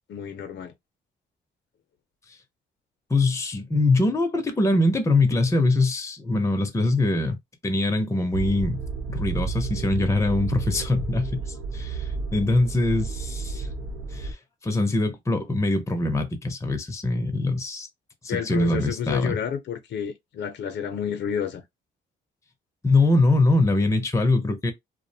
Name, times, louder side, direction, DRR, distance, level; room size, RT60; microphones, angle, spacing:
voice 1, 0.1-0.7 18.3-21.6, left 8 dB, 65° left, 0.6 m, -30 dB
voice 2, 3.1-7.4 7.6-8.8 9.1-11.4 11.7-13.7 14.1-14.4 14.6-17.9 18.2-19.4 22.8-24.7, left 2 dB, 15° left, 0.6 m, -23 dB
sound 1, 8.3-14.3, right 4 dB, 75° right, 0.6 m, -32 dB
2.5 x 2.0 x 2.7 m
cardioid pair, 90°, 20 cm